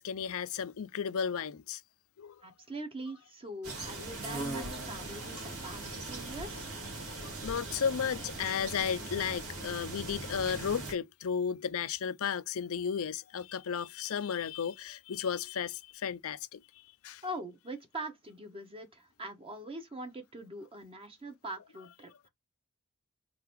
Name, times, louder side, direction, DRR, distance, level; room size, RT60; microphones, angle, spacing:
voice 1, 0.0-1.8 2.2-2.4 7.2-16.6 17.0-17.2, left 7 dB, 65° left, 0.5 m, -34 dB
voice 2, 2.4-6.7 17.2-22.3, right 1 dB, 25° right, 1.0 m, -43 dB
sound 1, 3.6-10.9, right 2 dB, 85° right, 2.1 m, -40 dB
3.8 x 3.4 x 3.0 m
head